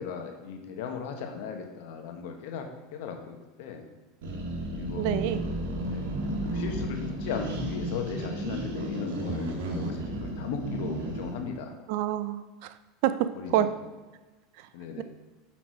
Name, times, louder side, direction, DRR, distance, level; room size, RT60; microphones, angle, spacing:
voice 1, 0.0-3.9 4.7-5.0 5.8-6.0 6.5-11.7 13.3-13.7 14.7-15.0, left 6 dB, 70° left, 4 dB, 1.3 m, -37 dB
sound 1, 4.2-11.4, right 1 dB, 85° right, 1.7 m, -33 dB
voice 2, 5.0-5.4 11.9-12.7 13.0-13.7 14.6-14.7 15.0-15.1, right 12 dB, 65° right, 12 dB, 0.5 m, -27 dB
6.2 x 5.9 x 4.8 m, 1.2 s
supercardioid pair, 130°, 0 cm